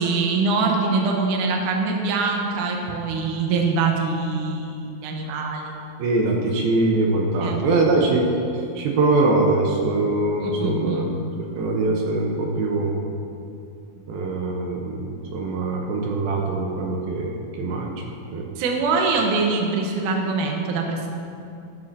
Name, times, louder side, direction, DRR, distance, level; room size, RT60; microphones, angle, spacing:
voice 1, 0.0-5.6 7.4-7.6 10.4-11.1 18.6-21.1, right 4 dB, 65° right, 1 dB, 2.4 m, -23 dB
voice 2, 6.0-8.2 8.8-11.1 11.4-12.9 14.1-18.0 18.3-18.4, right 2 dB, 80° right, 0 dB, 2.8 m, -22 dB
14.0 x 13.0 x 2.8 m, 2.5 s
omnidirectional pair, 4.3 m